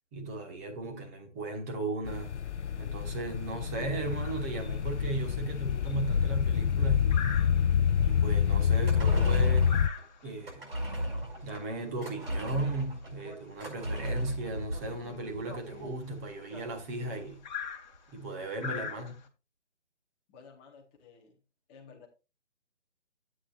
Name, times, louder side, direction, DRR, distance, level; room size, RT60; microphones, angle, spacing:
voice 1, 0.1-2.3 2.8-7.2 8.0-9.7 10.2-10.7 11.4-17.4 18.1-19.2, right 2 dB, 15° right, 1.2 m, -36 dB
sound 1, 2.0-9.9, left 8 dB, 70° left, 0.5 m, -27 dB
sound 2, 4.0-19.3, left 6 dB, 40° left, 1.5 m, -45 dB
sound 3, 8.8-17.3 17.6-17.7, equal, 55° right, 5.2 m, -36 dB
voice 2, 20.3-21.4 21.7-22.1, left 5 dB, 10° left, 0.9 m, -54 dB
12.5 x 8.6 x 2.4 m
figure-of-eight pair, 150°, 35 cm